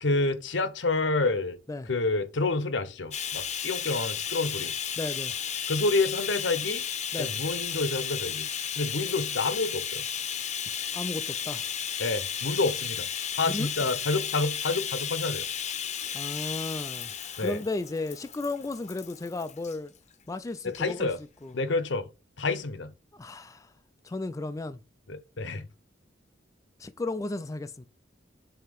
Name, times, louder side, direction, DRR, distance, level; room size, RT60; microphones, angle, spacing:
voice 1, 0.0-1.6 1.8-4.7 5.7-6.8 7.2-8.5 8.8-10.0 12.0-13.1 13.3-15.5 17.4-17.6 20.6-21.2 21.5-22.1 22.4-22.9 25.1-25.7, left 3 dB, 75° left, 0.9 m, -28 dB
Bathtub (filling or washing), 3.1-19.8 20.7-20.8 21.2-21.3, left 8 dB, 40° left, 0.7 m, -34 dB
voice 2, 5.0-5.3 7.1-7.3 10.9-11.7 13.5-13.7 16.1-17.1 17.4-19.9 20.3-21.1 21.4-21.6 23.1-23.7 24.0-24.8 26.8-27.9, left 2 dB, 20° left, 0.3 m, -34 dB
7.3 x 2.8 x 5.2 m
head